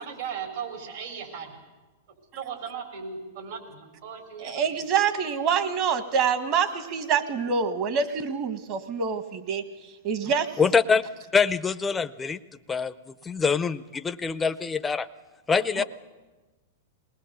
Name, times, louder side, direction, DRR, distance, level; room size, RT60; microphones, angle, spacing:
voice 1, 0.0-1.6 2.4-4.6, right 6 dB, 70° right, 4.6 m, -37 dB
voice 2, 4.4-10.5 15.8-15.9, right 6 dB, 40° right, 1.6 m, -26 dB
voice 3, 10.6-11.0 11.3-12.4 12.7-15.1 15.5-15.8, left 5 dB, 15° left, 0.5 m, -24 dB
20.5 x 19.5 x 6.8 m
hypercardioid pair, 135°, 0 cm